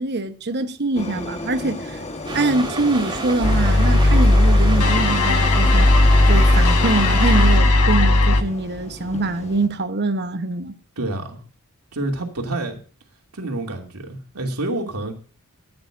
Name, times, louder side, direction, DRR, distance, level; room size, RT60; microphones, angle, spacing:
voice 1, 0.0-2.0 2.3-5.9 6.3-10.7, right 2 dB, 50° right, 1.0 m, -24 dB
sound 1, 0.9-9.7, left 2 dB, 30° left, 1.3 m, -34 dB
sound 2, 2.3-7.6, right 2 dB, 20° right, 2.3 m, -30 dB
sound 3, 3.4-8.4, left 2 dB, 90° left, 1.3 m, -15 dB
voice 2, 11.0-11.4 11.9-12.8 13.3-15.1, right 2 dB, 85° right, 2.7 m, -28 dB
14.5 x 9.7 x 2.6 m
head